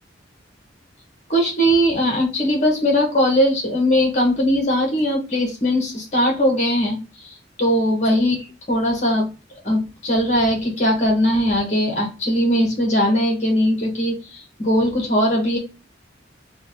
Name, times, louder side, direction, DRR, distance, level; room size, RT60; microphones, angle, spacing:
voice 1, 1.3-9.3 9.6-15.6, equal, 40° left, -1 dB, 1.6 m, -20 dB
3.9 x 2.4 x 3.8 m, 0.30 s
head